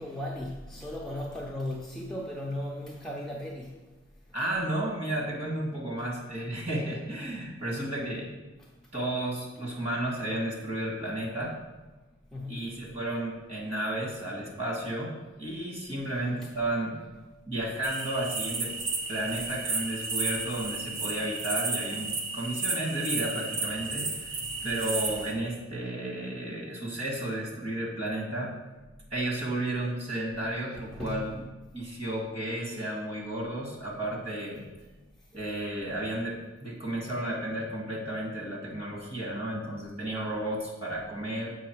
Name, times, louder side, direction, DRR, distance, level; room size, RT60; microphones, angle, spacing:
voice 1, 0.0-3.8 8.6-8.7 12.3-12.8 16.1-16.2 16.4-16.5 19.2-19.3 30.8-31.3, left 1 dB, ahead, -3 dB, 0.6 m, -37 dB
voice 2, 4.3-8.3 8.9-11.5 12.5-17.0 17.5-18.7 19.1-24.4 24.6-28.6 29.1-31.4 31.7-34.6 35.3-41.6, right 1 dB, 30° right, -2 dB, 1.8 m, -33 dB
sound 1, 17.8-25.3, right 3 dB, 75° right, 1.1 m, -33 dB
7.1 x 5.3 x 4.6 m, 1.1 s
head